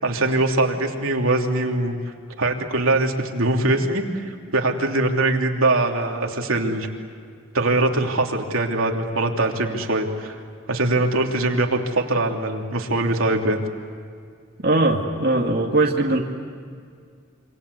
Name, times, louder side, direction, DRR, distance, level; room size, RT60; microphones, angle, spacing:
voice 1, 0.0-2.0 2.4-6.9 7.5-10.3 10.7-13.6, right 2 dB, 80° right, 1 dB, 3.1 m, -22 dB
voice 2, 14.6-16.2, right 2 dB, 45° right, 0 dB, 2.3 m, -20 dB
27.0 x 26.5 x 8.3 m, 2.1 s
head